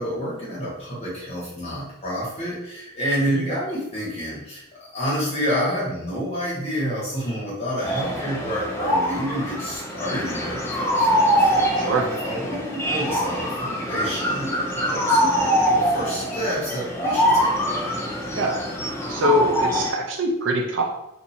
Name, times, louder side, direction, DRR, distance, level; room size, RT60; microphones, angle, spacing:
voice 1, 0.0-4.6 4.9-11.9 12.2-17.5, equal, 30° left, -7 dB, 1.4 m, -29 dB
voice 2, 3.2-3.6 11.8-12.1 18.3-18.6 19.1-20.8, right 1 dB, 55° right, 2 dB, 0.5 m, -23 dB
sound 1, 7.8-19.9, equal, 10° left, 0.4 m, -23 dB
2.7 x 2.6 x 4.2 m, 0.88 s
head